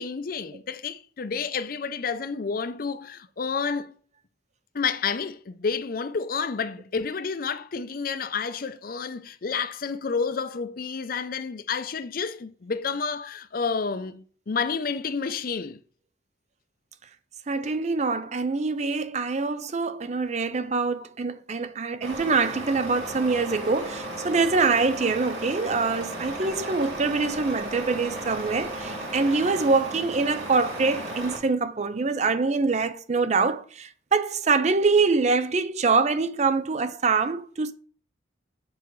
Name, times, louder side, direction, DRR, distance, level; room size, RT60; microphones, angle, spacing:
voice 1, 0.0-3.9 4.7-15.8, left 5 dB, 50° left, 0.5 m, -30 dB
voice 2, 17.5-37.7, right 4 dB, 35° right, 0.5 m, -24 dB
Truck, 22.0-31.4, right 1 dB, 80° right, 2.4 m, -35 dB
7.9 x 5.7 x 3.1 m
head